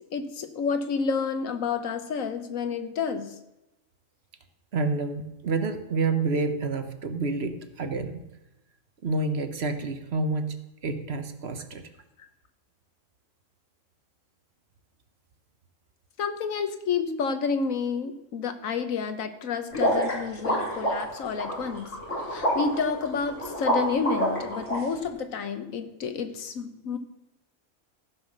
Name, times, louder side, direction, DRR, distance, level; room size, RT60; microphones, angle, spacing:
voice 1, 0.1-3.3 16.2-21.9 22.2-27.0, left 5 dB, 80° left, 9 dB, 1.4 m, -30 dB
voice 2, 4.7-8.3 9.0-10.6 10.8-11.9, right 3 dB, 55° right, 8 dB, 1.2 m, -28 dB
sound 1, 19.7-24.8, equal, 60° left, 3.8 m, -27 dB
14.5 x 5.7 x 6.5 m, 0.93 s
omnidirectional pair, 1.4 m